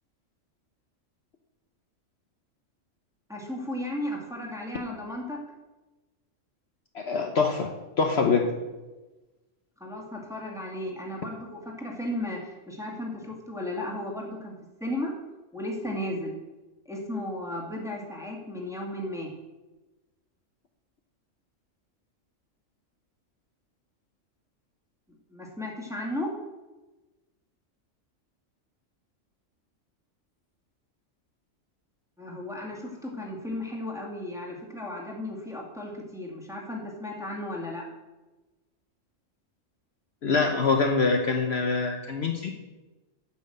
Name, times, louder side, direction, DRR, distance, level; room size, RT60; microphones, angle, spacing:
voice 1, 3.3-5.4 9.8-14.6 14.8-15.1 15.5-16.4 16.9-19.3 25.3-26.3 32.2-37.8, left 1 dB, ahead, -2 dB, 2.0 m, -35 dB
voice 2, 6.9-7.7 8.0-8.5 40.2-42.5, left 4 dB, 55° left, 4 dB, 1.1 m, -24 dB
8.6 x 6.2 x 7.8 m, 1.1 s
omnidirectional pair, 1.4 m